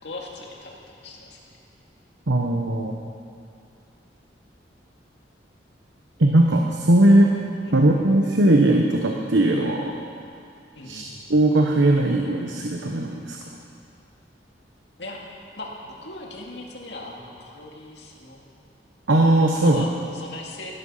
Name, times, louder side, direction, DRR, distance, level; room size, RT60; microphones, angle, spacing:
voice 1, 0.0-1.6 7.0-7.1 7.6-7.8 10.7-11.1 15.0-15.2 15.6-18.4 19.5-20.7, left 2 dB, 65° left, -1 dB, 2.4 m, -39 dB
voice 2, 2.3-2.9 6.2-7.3 7.7-9.9 10.9-11.0 11.3-13.4 19.1-19.8, right 1 dB, 85° right, 1 dB, 1.1 m, -19 dB
17.0 x 12.5 x 5.7 m, 2.4 s
head